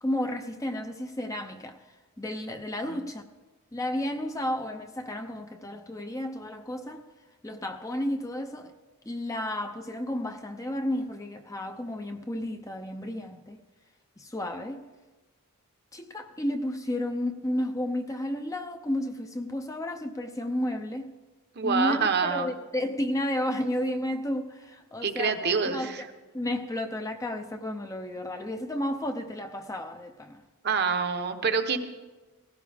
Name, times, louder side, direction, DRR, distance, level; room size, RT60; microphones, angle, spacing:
voice 1, 0.0-1.8 2.2-3.2 3.7-7.0 7.4-8.7 9.1-13.6 14.2-14.9 15.9-21.1 21.6-26.1 26.3-30.4, left 1 dB, 15° left, 6 dB, 0.6 m, -32 dB
voice 2, 21.6-22.5 25.0-26.0 30.6-31.8, right 5 dB, 50° right, 7 dB, 0.9 m, -26 dB
17.5 x 15.5 x 3.5 m, 1.2 s
head